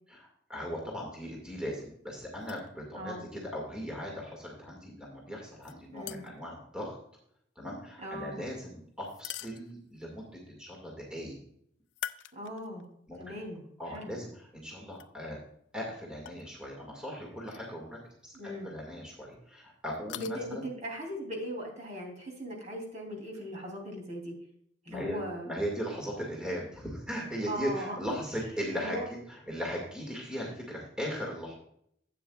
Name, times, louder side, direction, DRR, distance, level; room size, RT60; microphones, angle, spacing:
voice 1, 0.1-7.0 7.6-11.4 13.1-13.4 13.8-15.4 15.7-20.6 24.9-29.2 29.5-31.5, equal, 5° right, -2 dB, 2.0 m, -38 dB
sound 1, 2.4-2.7 5.6-6.5 9.0-10.1 11.9-12.9 13.4-13.5 14.9-15.1 16.3-16.4 17.4-17.7 18.0-18.1 19.9-20.3, left 11 dB, 70° left, 0.4 m, -43 dB
voice 2, 5.9-6.2 8.0-8.4 12.3-12.9 13.1-14.1 18.3-18.7 20.2-24.3 24.8-25.6 27.4-28.0 28.7-29.1, equal, 40° right, 0 dB, 3.1 m, -39 dB
12.0 x 8.6 x 2.4 m, 0.70 s
head